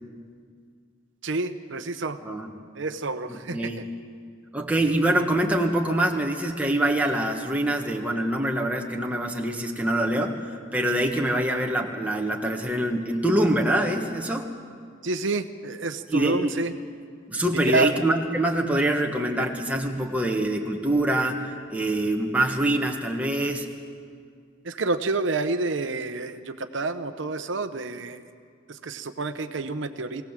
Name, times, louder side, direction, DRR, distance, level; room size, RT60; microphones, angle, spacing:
voice 1, 1.2-2.2 2.7-3.8 15.0-16.7 17.5-17.9 24.6-28.2 28.7-30.2, right 3 dB, 70° right, 9 dB, 0.8 m, -28 dB
voice 2, 3.3-3.8 4.5-14.5 16.1-16.5 17.3-23.7, right 1 dB, 5° right, 1 dB, 1.4 m, -25 dB
23.0 x 17.0 x 7.5 m, 2.2 s
head